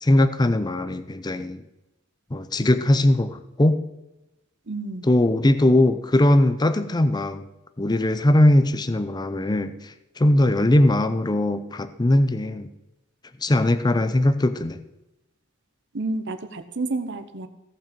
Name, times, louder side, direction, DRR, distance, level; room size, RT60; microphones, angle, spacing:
voice 1, 0.0-1.6 2.3-3.8 5.0-7.4 7.8-12.7 13.4-14.8, left 1 dB, 20° left, 11 dB, 0.5 m, -20 dB
voice 2, 4.7-5.1 15.9-17.5, right 2 dB, 65° right, 9 dB, 0.9 m, -30 dB
16.0 x 5.9 x 5.2 m, 0.97 s
head